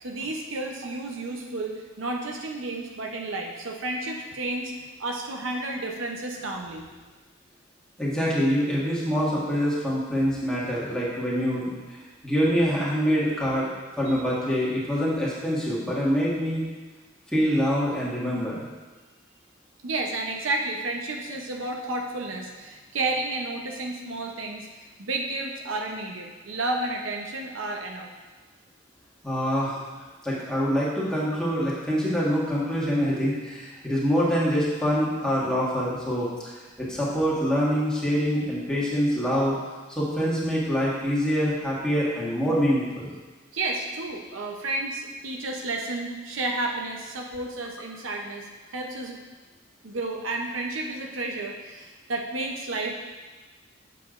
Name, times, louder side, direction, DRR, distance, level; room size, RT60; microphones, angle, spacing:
voice 1, 0.0-4.7 5.0-6.9 14.1-14.2 19.8-24.7 25.0-28.1 43.5-49.2 49.8-52.9, right 2 dB, 80° right, 1 dB, 0.7 m, -31 dB
voice 2, 8.0-11.7 12.2-13.7 14.0-16.7 17.3-18.7 29.2-29.8 30.2-36.5 36.8-39.5 39.9-43.1, equal, 5° left, -8 dB, 1.4 m, -25 dB
7.4 x 6.5 x 2.5 m, 1.3 s
head